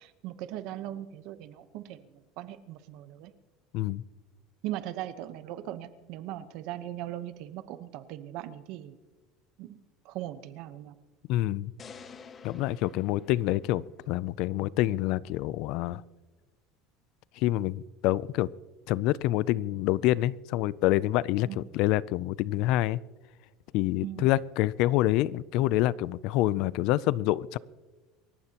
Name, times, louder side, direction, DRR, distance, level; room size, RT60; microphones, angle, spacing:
voice 1, 0.0-3.3 4.6-9.0 9.6-9.8 10.0-11.0 21.5-21.8 24.0-24.3, right 13 dB, 50° right, 12 dB, 0.9 m, -39 dB
voice 2, 11.3-11.7 12.4-16.0 17.4-18.5 18.9-23.0 23.7-27.6, left 15 dB, 50° left, 21 dB, 0.4 m, -27 dB
sound 1, 11.8-14.1, left 6 dB, 20° left, 0.7 m, -50 dB
28.0 x 15.0 x 2.9 m, 1.2 s
cardioid pair, 175°, 0 cm